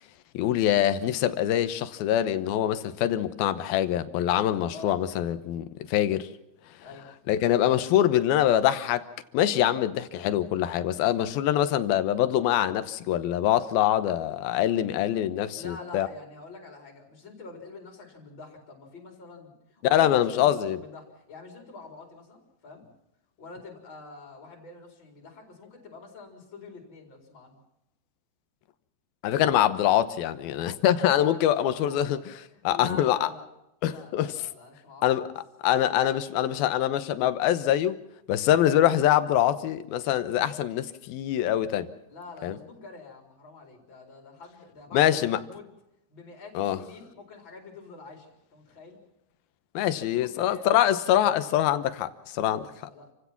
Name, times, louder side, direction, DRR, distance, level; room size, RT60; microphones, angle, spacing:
voice 1, 0.3-6.3 7.3-9.1 9.3-16.1 19.9-20.8 29.2-32.2 32.6-33.3 33.8-34.3 35.0-35.2 35.6-38.0 38.3-41.9 42.4-42.6 44.9-45.4 46.6-46.8 49.7-52.6, left 11 dB, 75° left, 12 dB, 2.7 m, -24 dB
voice 2, 4.7-5.0 6.8-7.1 15.5-22.8 23.4-27.6 31.1-33.5 33.8-35.3 42.1-45.7 46.1-49.0 50.0-50.7 52.4-53.1, left 3 dB, 30° left, 2 dB, 4.7 m, -46 dB
29.5 x 16.5 x 6.0 m, 0.86 s
omnidirectional pair, 4.6 m